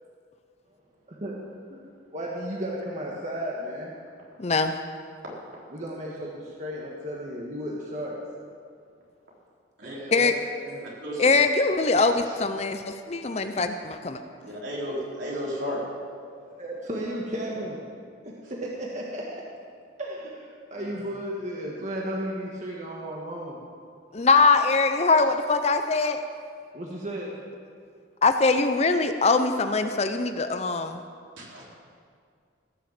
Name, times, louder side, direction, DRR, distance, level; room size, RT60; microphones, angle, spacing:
voice 1, 2.1-3.9 5.7-8.2 9.8-10.9 12.0-12.1 13.3-13.5 16.2-17.8 18.6-19.4 20.0-23.6 26.7-27.4, equal, 35° right, -3 dB, 1.5 m, -34 dB
voice 2, 4.4-4.7 10.1-10.3 11.2-14.2 24.1-26.2 28.2-31.0, left 4 dB, 35° left, 8 dB, 0.6 m, -22 dB
voice 3, 14.4-15.8 20.7-20.8 31.4-31.6, equal, 70° right, -5 dB, 4.3 m, -33 dB
16.5 x 6.8 x 7.6 m, 2.2 s
head